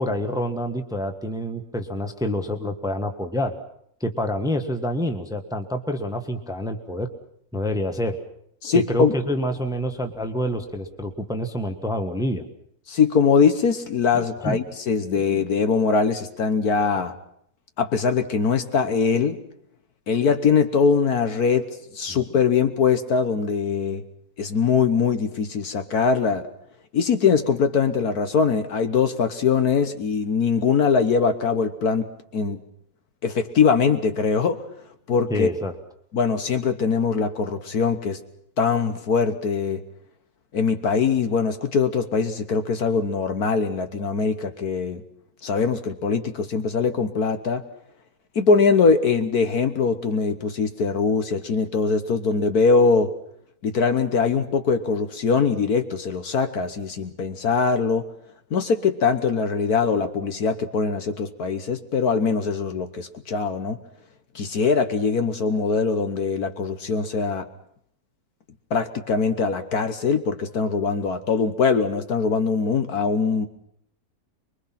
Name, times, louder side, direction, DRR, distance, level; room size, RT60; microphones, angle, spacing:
voice 1, 0.0-3.5 4.0-7.1 7.5-8.2 8.7-12.4 14.1-14.6 22.1-22.2 35.3-35.7, equal, ahead, 6 dB, 1.3 m, -27 dB
voice 2, 8.6-9.1 12.9-17.1 17.8-19.4 20.1-24.0 24.4-26.5 26.9-32.1 32.3-32.6 33.2-34.6 35.1-35.5 36.1-38.2 38.6-39.8 40.5-45.0 45.4-47.6 48.3-53.1 53.6-58.1 58.5-63.8 64.3-67.5 68.7-73.5, left 5 dB, 60° left, 8 dB, 1.6 m, -22 dB
24.5 x 22.5 x 5.9 m, 0.70 s
omnidirectional pair, 1.9 m